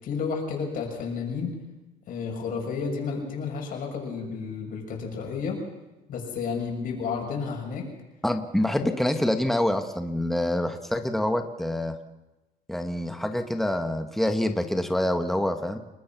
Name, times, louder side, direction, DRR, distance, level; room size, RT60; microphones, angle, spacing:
voice 1, 0.0-1.5 2.1-5.6 6.1-7.9 8.8-9.0, left 5 dB, 60° left, 0 dB, 7.0 m, -31 dB
voice 2, 8.2-12.0 12.7-15.8, left 1 dB, ahead, 6 dB, 1.8 m, -26 dB
29.5 x 21.0 x 6.2 m, 1.0 s
cardioid pair, 130°, 16 cm